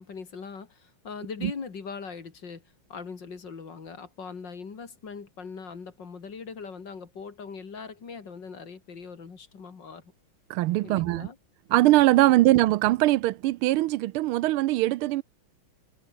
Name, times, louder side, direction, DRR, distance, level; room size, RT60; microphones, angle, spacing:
voice 1, 0.0-2.6 2.9-10.0 10.8-11.4 12.4-12.5, left 5 dB, 55° left, 3.1 m, -40 dB
voice 2, 10.5-11.3 11.7-15.2, right 17 dB, 90° right, 1.5 m, -21 dB
omnidirectional pair, 2.3 m